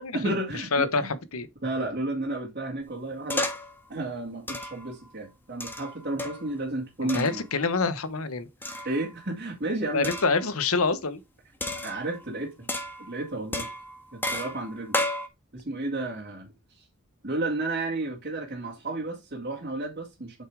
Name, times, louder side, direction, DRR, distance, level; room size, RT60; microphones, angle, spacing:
voice 1, 0.1-1.1 1.6-3.5 3.9-7.5 8.8-10.1 11.8-12.7 13.0-13.7 14.1-15.0 15.5-16.9 17.2-20.4, right 2 dB, 45° right, 2.3 m, -32 dB
voice 2, 0.7-1.5 7.1-8.5 9.9-11.2, left 4 dB, 85° left, 1.1 m, -26 dB
sound 1, 3.3-3.8 4.5-4.9 5.6-6.5 7.1-7.4 8.6-9.1 10.0-10.4 11.6-12.3 12.7-13.2 13.5-15.3, left 1 dB, 10° left, 1.5 m, -32 dB
8.5 x 6.6 x 3.5 m
head